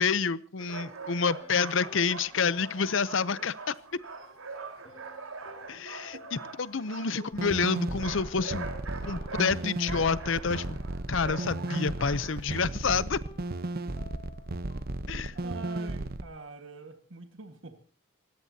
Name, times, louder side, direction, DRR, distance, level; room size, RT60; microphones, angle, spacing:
voice 1, 0.0-3.7 5.7-6.2 6.6-8.7 9.0-10.8 11.1-13.2 15.1-15.3, left 5 dB, 65° left, 17 dB, 0.7 m, -28 dB
sound 1, 0.6-12.6, right 4 dB, 85° right, 4.3 m, -43 dB
sound 2, 1.4-12.2 12.5-14.8, left 3 dB, 30° left, 3.3 m, -56 dB
voice 2, 6.1-6.5 7.1-7.3 9.1-9.5 15.3-17.8, right 4 dB, 65° right, 6 dB, 1.6 m, -45 dB
sound 3, 7.3-16.2, right 2 dB, 45° right, 0.9 m, -35 dB
25.5 x 17.5 x 2.8 m, 0.38 s
head